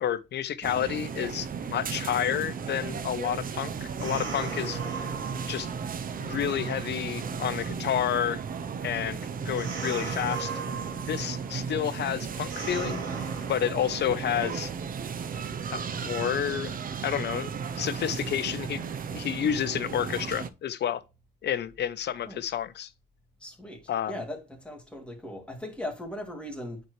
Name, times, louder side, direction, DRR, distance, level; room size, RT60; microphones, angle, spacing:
voice 1, 0.0-4.8 5.5-5.7 6.2-8.4 8.8-9.2 9.4-10.5 11.1-13.0 13.5-14.7 15.7-16.7 17.0-18.8 19.1-21.0 21.4-22.9 23.9-24.1, left 10 dB, 60° left, 0.7 m, -30 dB
sound 1, 0.6-20.5, right 6 dB, 45° right, 0.6 m, -35 dB
sound 2, 3.6-14.7, right 5 dB, 75° right, 2.6 m, -40 dB
voice 2, 23.4-23.8 24.1-26.8, left 1 dB, 5° left, 2.6 m, -38 dB
9.2 x 4.5 x 3.1 m
cardioid pair, 90°, 20 cm